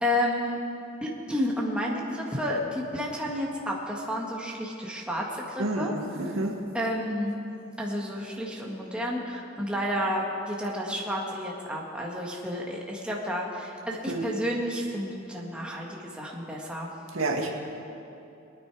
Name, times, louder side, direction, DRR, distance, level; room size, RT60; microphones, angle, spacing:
voice 1, 0.0-0.6 1.0-6.4 6.7-7.4 7.8-16.9, equal, 5° right, -3 dB, 1.8 m, -31 dB
voice 2, 5.6-6.0 6.4-6.5 14.1-14.2 17.1-17.5, right 2 dB, 90° right, 1 dB, 1.9 m, -28 dB
24.0 x 9.4 x 4.9 m, 2.7 s
head